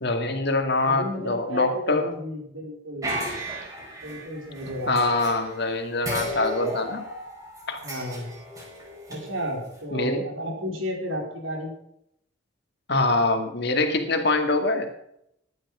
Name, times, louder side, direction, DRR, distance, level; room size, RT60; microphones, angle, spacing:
voice 1, 0.0-2.1 4.9-7.0 7.7-7.8 9.9-10.2 12.9-14.9, left 2 dB, 55° left, 6 dB, 2.0 m, -24 dB
voice 2, 0.8-3.2 4.0-5.2 7.8-8.3 9.1-11.7, equal, 85° right, 0 dB, 4.6 m, -33 dB
sound 1, 3.0-5.7 6.0-9.8, equal, 15° right, 4.7 m, -35 dB
14.5 x 11.0 x 4.9 m, 0.75 s
head